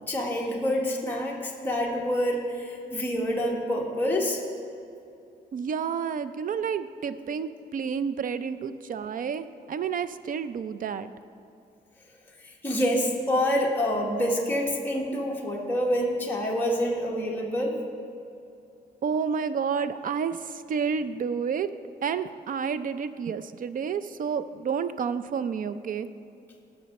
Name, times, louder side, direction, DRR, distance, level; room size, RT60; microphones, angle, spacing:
voice 1, 0.1-4.4 12.4-17.8, equal, 10° left, -2 dB, 1.3 m, -27 dB
voice 2, 5.5-11.1 19.0-21.7 22.0-26.1, right 6 dB, 50° right, 12 dB, 0.5 m, -30 dB
18.0 x 6.2 x 4.2 m, 2.7 s
cardioid pair, 120°, 17 cm